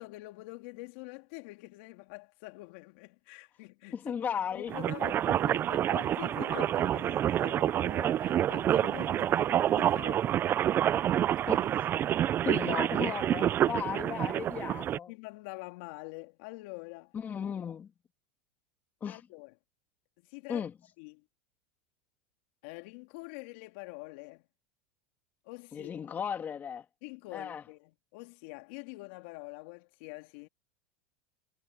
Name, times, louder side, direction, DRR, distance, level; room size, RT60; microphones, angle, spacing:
voice 1, 0.0-4.0 4.5-10.5 11.5-11.6 12.5-12.6 15.1-17.1 19.1-19.5 20.3-20.7 21.0-21.2 22.6-24.4 25.4-26.2 27.0-30.5, left 25 dB, 65° left, 2.8 m, -45 dB
voice 2, 3.9-4.8 10.9-11.0 11.5-11.7 12.4-15.1 17.1-17.9 19.0-19.2 20.5-20.7 25.7-26.8 27.3-27.6, left 7 dB, 25° left, 2.5 m, -36 dB
sound 1, 4.7-15.0, right 11 dB, 30° right, 0.5 m, -28 dB
supercardioid pair, 115°, 7 cm